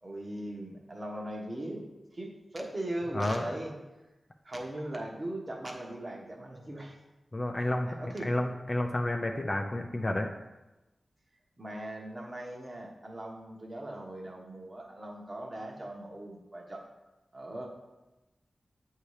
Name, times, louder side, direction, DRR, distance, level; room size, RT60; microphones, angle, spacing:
voice 1, 0.0-3.7 4.4-7.0 7.6-8.3 11.6-16.8 17.3-17.7, right 1 dB, 30° right, 0 dB, 1.1 m, -39 dB
voice 2, 3.1-3.4 7.3-7.9 8.2-10.3, left 1 dB, 30° left, 4 dB, 0.5 m, -30 dB
8.3 x 2.8 x 4.8 m, 1.0 s
wide cardioid pair, 105°, 0 cm